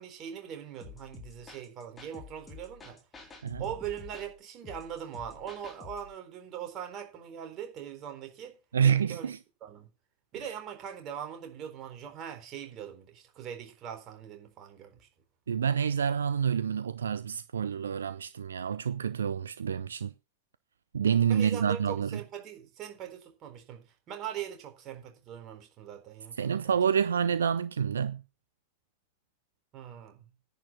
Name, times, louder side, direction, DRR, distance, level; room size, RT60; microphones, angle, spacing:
voice 1, 0.0-3.0 3.6-8.6 8.8-9.3 9.6-9.9 10.3-15.1 21.3-26.7 29.7-30.2, right 9 dB, 35° right, 3.9 m, -41 dB
sound 1, 0.8-6.1, left 5 dB, 15° left, 3.7 m, -49 dB
voice 2, 8.7-9.4 10.4-10.5 15.5-20.1 20.9-22.2 26.4-28.2, right 7 dB, 70° right, 0.5 m, -28 dB
10.5 x 8.9 x 6.0 m
figure-of-eight pair, 90°, 0 cm